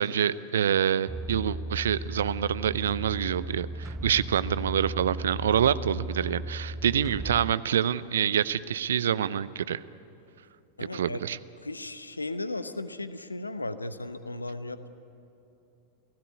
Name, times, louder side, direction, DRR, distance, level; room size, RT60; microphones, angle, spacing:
voice 1, 0.0-9.8 10.9-11.4, right 9 dB, 65° right, 18 dB, 0.6 m, -26 dB
sound 1, 1.1-7.5, right 1 dB, 10° right, 0.5 m, -36 dB
voice 2, 10.8-11.2 11.6-14.9, left 2 dB, 80° left, 12 dB, 1.0 m, -36 dB
29.0 x 16.5 x 9.6 m, 2.8 s
figure-of-eight pair, 90°, 0 cm